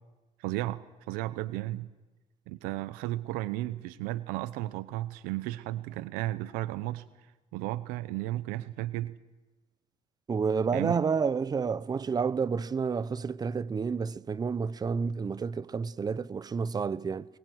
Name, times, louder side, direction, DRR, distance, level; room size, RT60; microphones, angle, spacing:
voice 1, 0.4-0.8 1.1-1.9 2.5-7.0 7.5-9.1 10.7-10.9, right 16 dB, 90° right, 0.9 m, -34 dB
voice 2, 10.3-17.3, right 5 dB, 25° right, 0.9 m, -30 dB
25.0 x 22.0 x 8.0 m
cardioid pair, 100°, 14 cm